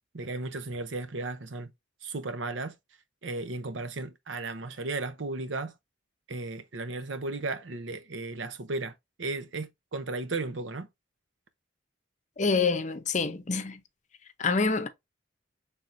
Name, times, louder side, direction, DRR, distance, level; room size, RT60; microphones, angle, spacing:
voice 1, 0.1-1.7 2.0-2.7 3.2-5.7 6.3-8.9 9.2-10.9, right 3 dB, 80° right, 0.8 m, -35 dB
voice 2, 12.4-13.8 14.4-14.9, left 4 dB, 40° left, 0.7 m, -26 dB
5.8 x 3.5 x 2.6 m
head